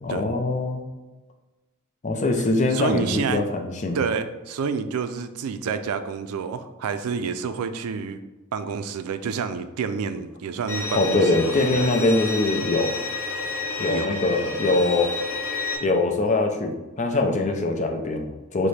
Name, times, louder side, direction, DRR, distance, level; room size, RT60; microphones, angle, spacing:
voice 1, 0.0-0.8 2.0-4.0 10.9-12.9 13.8-15.2 15.8-18.7, left 2 dB, 35° left, 3 dB, 0.5 m, -23 dB
voice 2, 2.7-3.4 3.9-8.2 8.5-11.9 13.9-14.1, right 6 dB, 85° right, 10 dB, 0.4 m, -29 dB
Bowed string instrument, 10.7-15.8, left 3 dB, 80° left, 1.0 m, -30 dB
4.8 x 2.1 x 4.1 m, 1.2 s
head